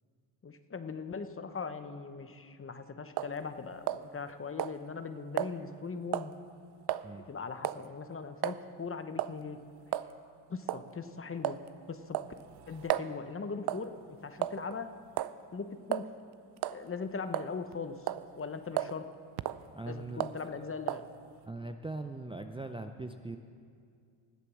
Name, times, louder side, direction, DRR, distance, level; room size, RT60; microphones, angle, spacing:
voice 1, 0.4-6.3 7.2-9.6 10.5-11.6 11.9-12.3 12.7-14.9 15.5-16.1 16.7-18.0 18.3-19.1 19.9-21.0, left 5 dB, 25° left, 9 dB, 1.0 m, -40 dB
sound 1, 3.2-3.4 3.9-4.3 4.6-4.8 5.4-5.5 6.1-6.3 6.9-7.1 7.6-7.9 8.4-8.6 9.2-9.4 9.9-10.1 10.7-10.9 11.4-11.7 12.1-13.1 13.7-13.9 14.4-14.8 15.2-15.4 15.9-16.1 16.6-16.8 17.3-17.7 18.1-18.3 18.8-19.0 19.4-19.6 20.2-20.4 20.9-21.1, right 13 dB, 50° right, 0.6 m, -33 dB
voice 2, 19.7-20.3 21.5-23.4, right 2 dB, 10° right, 5 dB, 0.6 m, -40 dB
19.5 x 8.2 x 6.3 m, 2.3 s
supercardioid pair, 75°, 50 cm